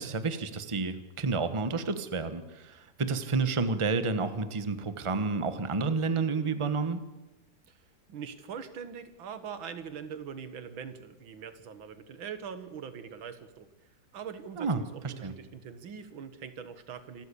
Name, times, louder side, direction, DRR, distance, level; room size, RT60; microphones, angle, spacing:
voice 1, 0.0-7.0 14.6-15.3, right 4 dB, 20° right, 11 dB, 1.1 m, -30 dB
voice 2, 7.7-13.7 14.1-17.3, right 7 dB, 85° right, 11 dB, 2.3 m, -42 dB
26.5 x 13.5 x 8.5 m, 1.0 s
omnidirectional pair, 2.1 m